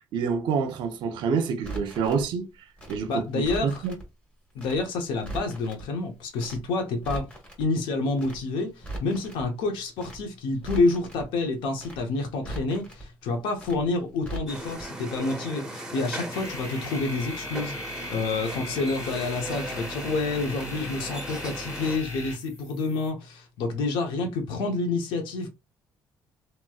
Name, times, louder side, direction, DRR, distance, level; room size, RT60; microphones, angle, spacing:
voice 1, 0.1-2.5 2.9-4.0, right 6 dB, 75° right, 0.7 m, -27 dB
Crackle, 1.6-2.2 2.8-4.0 4.6-4.8 5.1-5.8 6.4-6.6 6.9-7.6 8.2-8.4 8.7-9.4 10.0-10.2 10.5-11.2 11.8-12.0 12.3-13.0 13.6-13.8 14.1-14.8 15.1-15.2, right 2 dB, 15° left, 1.6 m, -39 dB
voice 2, 3.1-3.8 4.5-7.3 7.6-25.5, left 3 dB, 85° left, 0.8 m, -28 dB
sound 1, 14.5-22.0, right 1 dB, 5° right, 1.2 m, -38 dB
sound 2, 16.3-23.1, left 2 dB, 40° left, 1.6 m, -39 dB
3.1 x 2.9 x 2.3 m
cardioid pair, 105°, 8 cm